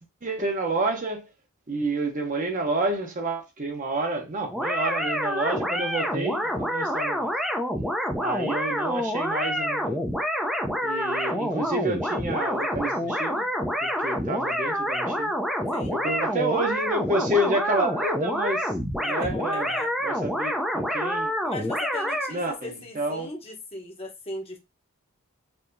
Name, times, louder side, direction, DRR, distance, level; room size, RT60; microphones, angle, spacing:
voice 1, 0.2-1.3 1.7-7.3 8.2-10.0 10.8-13.5 13.8-15.3 15.9-18.7 19.0-19.7 20.0-21.7 22.3-23.3, right 2 dB, 35° right, 0.8 m, -29 dB
sound 1, 4.5-22.3, equal, ahead, 0.5 m, -27 dB
voice 2, 19.0-19.9 21.4-24.6, left 2 dB, 25° left, 0.9 m, -38 dB
4.5 x 2.8 x 2.5 m
head